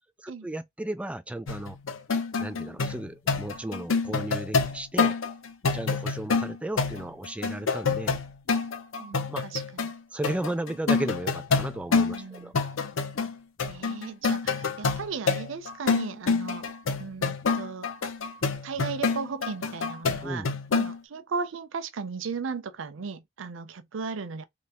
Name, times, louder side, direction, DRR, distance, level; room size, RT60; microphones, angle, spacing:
voice 1, 0.2-1.8 2.4-5.2 5.7-8.2 9.3-9.4 10.1-12.5 20.2-20.5, right 1 dB, 5° right, 0.3 m, -34 dB
sound 1, 1.5-10.0 10.2-12.2 12.5-13.3 13.6-21.0, left 4 dB, 80° left, 0.7 m, -27 dB
voice 2, 9.0-9.9 12.1-12.5 13.7-16.7 17.0-17.9 18.6-24.4, right 5 dB, 70° right, 0.5 m, -36 dB
3.3 x 2.9 x 2.8 m
head